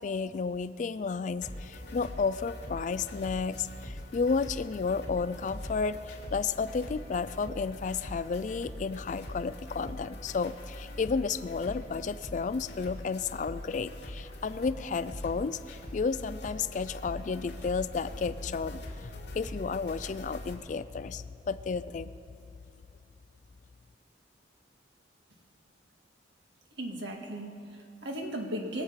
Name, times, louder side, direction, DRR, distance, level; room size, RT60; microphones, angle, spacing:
voice 1, 0.0-22.1, left 5 dB, 40° left, 15 dB, 0.3 m, -32 dB
sound 1, 1.4-20.5, left 1 dB, 60° left, 2.4 m, -43 dB
voice 2, 26.8-28.8, right 1 dB, 75° right, 1 dB, 1.9 m, -36 dB
21.5 x 8.0 x 5.7 m, 2.5 s
head